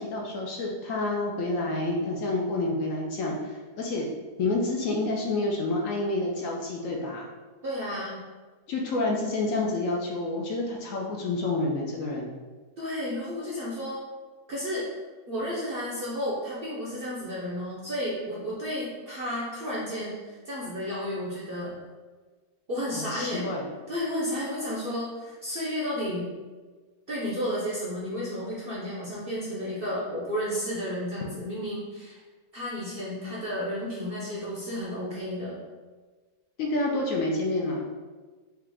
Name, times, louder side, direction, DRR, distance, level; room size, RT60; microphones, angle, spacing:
voice 1, 0.0-4.1 4.4-7.2 8.7-12.3 22.9-23.6 36.6-37.9, left 2 dB, 70° left, -1 dB, 0.9 m, -28 dB
voice 2, 7.6-8.2 12.8-14.0 14.5-14.9 15.3-21.8 22.7-23.5 23.9-26.3 27.1-32.2 32.5-35.6, equal, 50° right, -6 dB, 0.7 m, -32 dB
4.6 x 2.4 x 3.4 m, 1.4 s
omnidirectional pair, 1.7 m